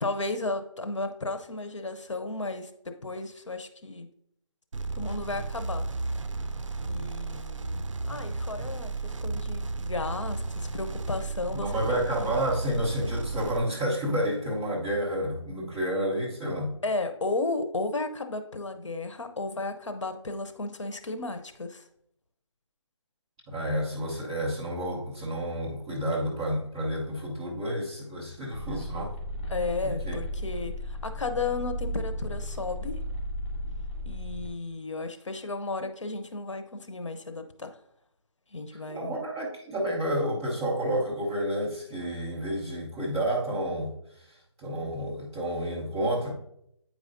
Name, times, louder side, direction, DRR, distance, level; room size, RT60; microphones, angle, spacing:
voice 1, 0.0-4.1 5.0-5.9 6.8-7.8 8.1-11.8 12.2-12.4 16.8-21.8 29.5-33.0 34.1-37.8 38.5-39.2, left 3 dB, 70° left, 8 dB, 0.8 m, -34 dB
sound 1, 4.7-13.6, right 3 dB, 75° right, 0.5 m, -33 dB
voice 2, 11.5-16.7 23.5-29.1 29.8-30.2 38.9-43.9 44.6-46.3, right 1 dB, 10° right, -8 dB, 0.7 m, -30 dB
sound 2, 28.5-34.5, equal, 20° left, 2.4 m, -34 dB
8.6 x 4.8 x 2.6 m, 0.73 s
figure-of-eight pair, 170°, 16 cm